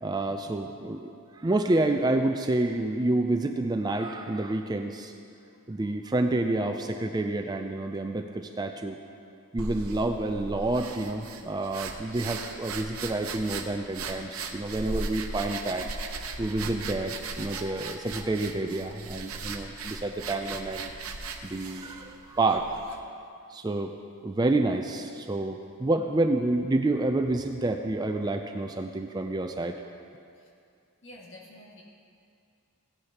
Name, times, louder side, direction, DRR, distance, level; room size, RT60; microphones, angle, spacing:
voice 1, 0.0-1.1 1.4-5.1 5.7-9.0 9.5-15.9 16.4-20.9 21.4-22.8 23.5-23.9 24.2-29.7, right 2 dB, 20° right, 5 dB, 0.3 m, -28 dB
sound 1, 9.6-23.0, right 3 dB, 75° right, 0.8 m, -38 dB
voice 2, 31.0-31.8, left 1 dB, 55° left, -3 dB, 1.9 m, -48 dB
16.5 x 9.6 x 2.9 m, 2.4 s
head